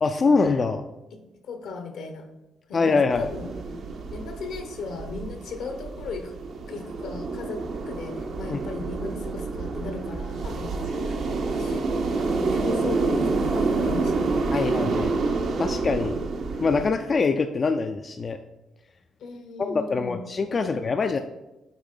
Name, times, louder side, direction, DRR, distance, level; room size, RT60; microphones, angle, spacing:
voice 1, 0.0-0.9 2.7-3.3 8.5-8.6 14.5-15.2 15.6-16.2 16.6-18.4 19.6-21.2, left 4 dB, 40° left, 7 dB, 0.3 m, -24 dB
voice 2, 1.1-2.3 2.7-3.8 4.1-6.3 6.7-11.9 12.2-14.8 19.2-20.2 20.6-20.7, left 4 dB, 75° left, 6 dB, 0.9 m, -37 dB
sound 1, 3.1-16.9, right 3 dB, 65° right, 0.8 m, -28 dB
8.2 x 3.1 x 3.8 m, 1.0 s
cardioid pair, 90°, 0 cm